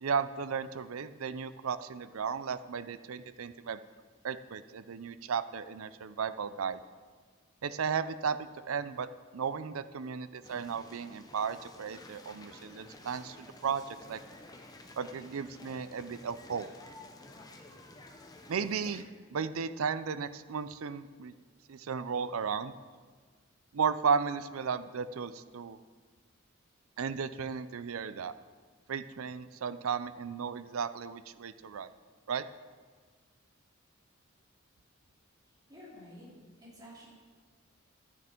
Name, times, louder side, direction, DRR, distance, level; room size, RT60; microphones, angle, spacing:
voice 1, 0.0-3.8 4.2-6.8 7.6-9.1 9.3-14.2 15.0-16.7 18.5-19.1 19.3-21.3 21.7-22.7 23.7-25.8 27.0-28.4 28.9-31.9 32.3-32.4, right 6 dB, 85° right, 14 dB, 0.5 m, -34 dB
sound 1, 10.4-19.0, left 2 dB, 20° left, 0.8 m, -52 dB
voice 2, 35.7-36.3 36.6-37.1, equal, 20° right, -7 dB, 3.3 m, -50 dB
11.5 x 9.7 x 4.5 m, 1.5 s
head